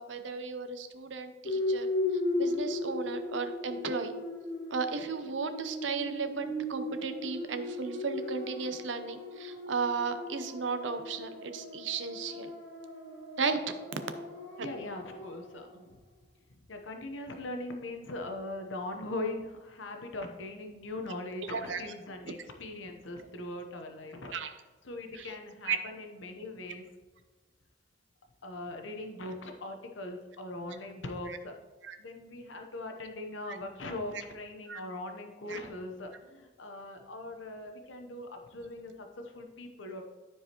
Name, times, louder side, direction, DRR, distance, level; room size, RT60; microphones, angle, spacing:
voice 1, 0.0-1.9 2.4-4.1 4.7-12.5 13.4-13.7 21.5-21.8 24.3-24.5 25.1-25.3 25.6-25.8 31.3-31.4 31.8-32.0 33.5-33.6 34.7-34.8 35.5-35.6, right 5 dB, 80° right, 8 dB, 0.7 m, -35 dB
sound 1, 1.5-15.7, left 2 dB, 70° left, 1.8 m, -37 dB
voice 2, 14.6-16.0 16.7-24.4 24.8-26.9 28.4-31.5 32.0-40.0, left 2 dB, 90° left, 4 dB, 0.9 m, -40 dB
12.5 x 4.8 x 2.9 m, 1.3 s
head